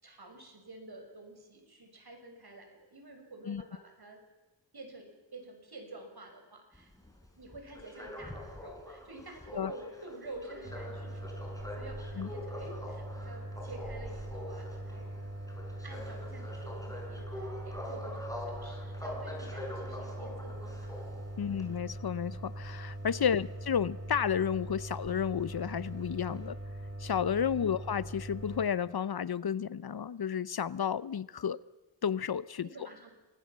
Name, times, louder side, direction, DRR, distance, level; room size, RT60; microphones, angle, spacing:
voice 1, 0.0-4.2 4.7-6.9 7.3-15.1 15.8-21.1 21.5-21.6 27.5-27.7 32.6-33.1, right 2 dB, 60° right, 4 dB, 6.3 m, -49 dB
sound 1, 6.7-22.0 23.2-25.0 25.4-25.5 25.7-26.4, left 1 dB, 10° left, 6.3 m, -45 dB
sound 2, 10.6-28.7, right 1 dB, 35° right, 5.4 m, -42 dB
voice 2, 21.4-26.6 27.0-31.6 32.0-32.7, left 8 dB, 60° left, 19 dB, 0.7 m, -32 dB
27.5 x 19.0 x 7.4 m, 1.1 s
cardioid pair, 50°, 43 cm